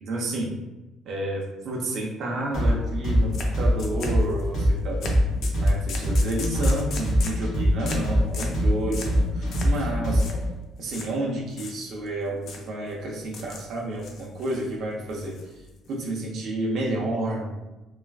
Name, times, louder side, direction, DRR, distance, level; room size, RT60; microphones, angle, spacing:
voice 1, 0.0-0.5 1.1-5.2 5.5-10.3 10.8-15.4 15.9-17.6, right 1 dB, 60° right, -1 dB, 0.6 m, -30 dB
sound 1, 2.5-10.5, equal, 80° left, 1.0 m, -22 dB
sound 2, 3.3-3.5 3.8-4.5 5.0-5.2 5.4-7.4 7.8-8.1 8.3-8.6 8.9-9.2 9.5-9.8 10.1-10.4 10.9-11.1 11.5-12.1 12.4-12.7 13.2-13.7 14.0-14.7 15.1-15.9, left 4 dB, 55° left, 0.5 m, -38 dB
3.3 x 2.4 x 2.3 m, 1.1 s
cardioid pair, 140°, 0 cm